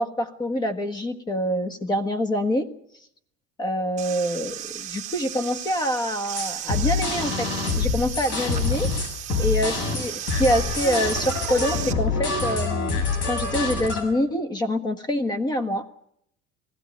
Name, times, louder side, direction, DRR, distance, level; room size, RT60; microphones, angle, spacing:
voice 1, 0.0-2.7 3.6-7.5 7.8-8.9 9.4-15.9, equal, 20° left, 9 dB, 1.5 m, -26 dB
sound 1, 4.0-11.9, right 11 dB, 35° right, 1.9 m, -35 dB
sound 2, 6.4-14.0, left 4 dB, 65° left, 7.6 m, -26 dB
19.5 x 16.0 x 9.4 m, 0.72 s
cardioid pair, 165°, 21 cm